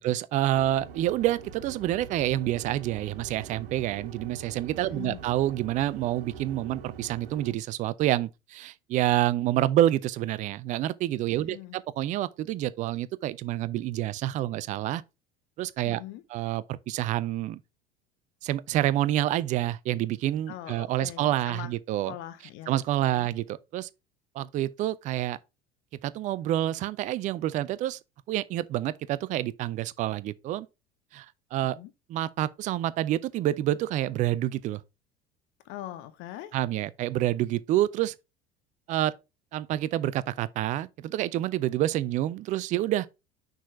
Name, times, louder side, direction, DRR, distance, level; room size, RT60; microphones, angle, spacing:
voice 1, 0.0-15.0 15.6-16.0 16.3-17.6 18.4-22.1 22.7-23.9 24.4-25.4 26.0-28.0 28.3-30.7 31.1-31.3 31.5-31.8 32.1-34.8 36.5-38.1 38.9-39.1 39.5-43.1, right 13 dB, 25° right, 0.3 m, -28 dB
sound 1, 0.5-7.5, right 7 dB, 65° right, 0.9 m, -44 dB
voice 2, 4.8-5.3 11.3-11.8 15.8-16.2 20.5-21.7 22.1-22.8 23.1-23.3 31.6-31.9 35.6-36.6, left 13 dB, 40° left, 0.6 m, -42 dB
6.2 x 4.0 x 4.4 m
figure-of-eight pair, 70°, 31 cm